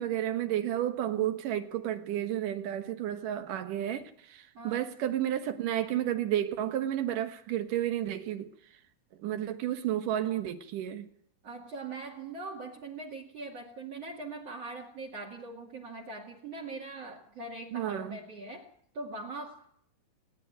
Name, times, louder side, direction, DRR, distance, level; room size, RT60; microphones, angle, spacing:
voice 1, 0.0-8.5 9.2-11.1 17.7-18.2, right 11 dB, 60° right, 2.7 m, -31 dB
voice 2, 4.5-4.9 11.4-19.6, right 3 dB, 45° right, 3.2 m, -42 dB
28.0 x 11.0 x 9.2 m
omnidirectional pair, 4.7 m